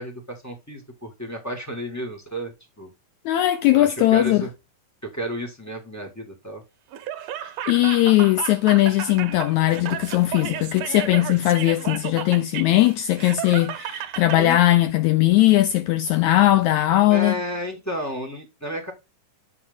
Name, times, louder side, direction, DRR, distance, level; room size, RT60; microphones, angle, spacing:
voice 1, 0.0-2.9 3.7-4.5 5.0-6.6 14.4-14.6 17.1-18.9, equal, 15° left, 0.6 m, -32 dB
voice 2, 3.2-4.4 7.7-17.3, left 15 dB, 90° left, 1.6 m, -19 dB
Laughter, 6.9-14.6, right 11 dB, 70° right, 1.7 m, -33 dB
8.5 x 4.3 x 3.7 m
omnidirectional pair, 3.9 m